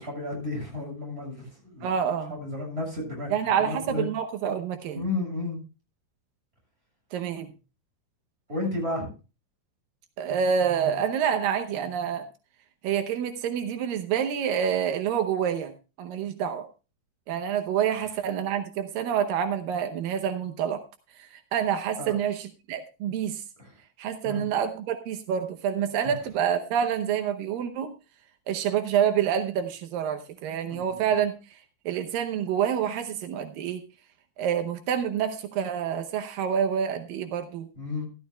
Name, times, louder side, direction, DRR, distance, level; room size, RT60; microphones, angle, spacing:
voice 1, 0.0-1.9 2.3-3.3 3.6-4.1 4.9-5.6 8.5-9.1 22.0-22.2 23.6-23.7 24.2-24.4 26.0-26.1 30.7-31.0 37.8-38.1, left 2 dB, 15° right, 0 dB, 7.9 m, -32 dB
voice 2, 1.8-2.3 3.3-5.0 7.1-7.5 10.2-12.3 12.8-15.7 16.0-16.7 17.3-20.8 21.2-23.4 24.0-27.9 28.5-31.6 31.9-33.8 34.4-37.7, right 8 dB, 85° right, 7 dB, 2.7 m, -27 dB
15.0 x 14.0 x 2.3 m, 0.31 s
omnidirectional pair, 3.9 m